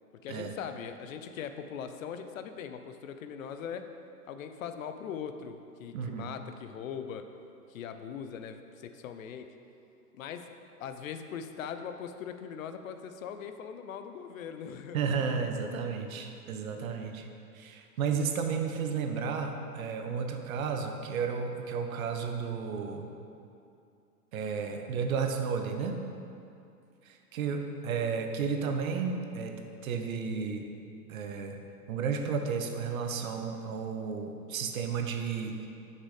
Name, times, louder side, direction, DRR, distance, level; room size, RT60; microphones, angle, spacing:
voice 1, 0.2-3.9 4.3-7.2 7.7-9.5 10.1-10.5 10.8-15.0, left 7 dB, 55° left, 8 dB, 0.6 m, -40 dB
voice 2, 5.9-6.3 14.9-17.3 17.5-23.1 24.3-26.0 27.0-29.5 29.8-30.7 31.1-31.6 31.9-35.7, right 6 dB, 60° right, 5 dB, 0.9 m, -32 dB
6.7 x 5.7 x 4.9 m, 2.6 s
hypercardioid pair, 110°, 48 cm